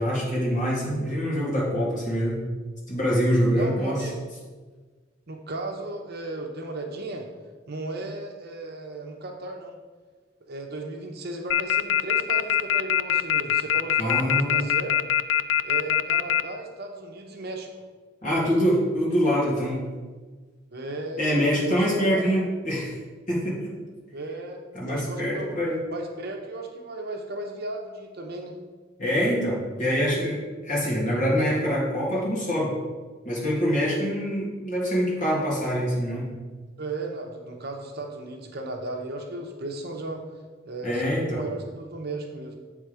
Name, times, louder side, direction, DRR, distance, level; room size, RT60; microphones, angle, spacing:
voice 1, 0.0-2.4 2.9-4.0 14.0-14.7 18.2-19.8 21.2-23.0 23.3-23.7 24.7-25.8 29.0-32.7 33.2-36.3 40.8-41.4, equal, 40° left, -5 dB, 2.1 m, -25 dB
voice 2, 3.5-4.2 5.3-7.3 7.7-9.8 10.4-15.1 15.6-17.7 20.7-22.4 24.1-25.6 25.9-28.6 36.8-40.2 40.6-42.6, right 2 dB, 55° right, 2 dB, 0.8 m, -35 dB
sound 1, 11.5-16.4, left 10 dB, 65° left, 0.3 m, -21 dB
8.1 x 3.6 x 4.9 m, 1.4 s
head